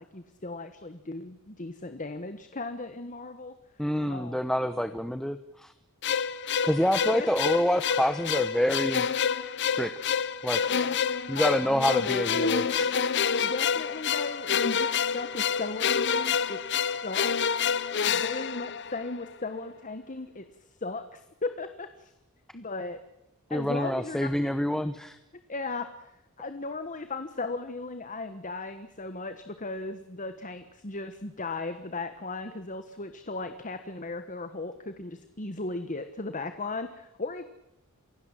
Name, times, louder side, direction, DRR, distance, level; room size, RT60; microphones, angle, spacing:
voice 1, 0.0-3.5 4.1-4.4 7.1-7.3 10.7-11.0 11.3-12.1 13.4-16.6 17.0-17.6 18.0-22.1 22.5-23.0 23.5-24.3 25.5-26.1 26.4-37.4, left 3 dB, 35° left, 9 dB, 1.3 m, -36 dB
voice 2, 3.8-5.7 6.6-9.0 9.8-10.2 10.4-10.8 11.3-12.9 23.5-25.2, equal, ahead, 10 dB, 0.9 m, -27 dB
sound 1, 6.0-19.3, left 7 dB, 55° left, 0.9 m, -28 dB
28.0 x 17.0 x 7.4 m, 0.89 s
head